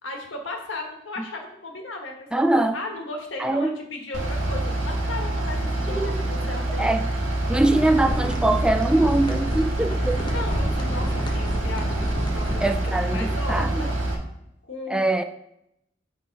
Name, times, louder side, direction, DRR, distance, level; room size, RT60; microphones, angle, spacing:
voice 1, 0.0-2.4 2.7-6.9 10.1-14.0 14.6-15.0, left 2 dB, 80° left, 2 dB, 1.5 m, -36 dB
voice 2, 2.3-2.8 3.4-3.7 5.9-6.2 6.8-7.0 7.5-10.2 12.6-13.8 14.9-15.2, right 2 dB, 5° right, 7 dB, 0.3 m, -22 dB
Bus / Idling, 4.1-14.1, right 1 dB, 85° right, 1.4 m, -26 dB
sound 1, 7.6-12.7, equal, 25° left, 0.9 m, -32 dB
8.5 x 3.8 x 4.7 m, 0.80 s
head